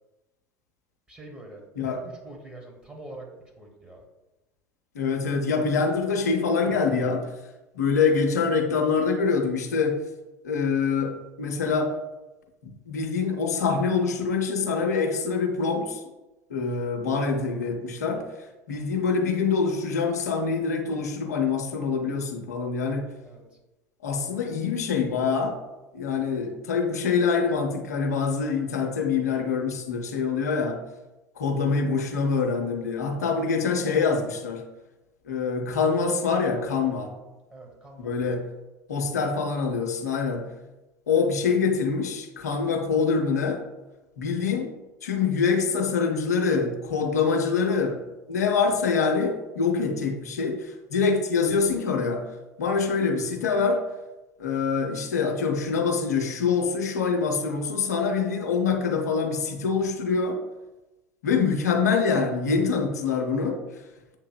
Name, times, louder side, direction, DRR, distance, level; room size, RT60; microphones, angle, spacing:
voice 1, 1.1-4.0 23.2-23.4 37.5-38.1, right 2 dB, 10° right, 1.2 m, -45 dB
voice 2, 1.8-2.1 4.9-7.3 7.7-10.0 10.4-12.0 12.6-16.0 16.5-18.3 18.7-23.1 24.0-25.6 25.9-30.8 31.4-34.7 35.3-37.2 38.0-38.5 38.9-40.5 41.1-43.6 44.2-44.7 45.0-52.3 52.6-53.9 54.4-60.4 61.2-63.6, left 5 dB, 70° left, 0.5 m, -25 dB
7.1 x 2.7 x 2.2 m
figure-of-eight pair, 70°, 9 cm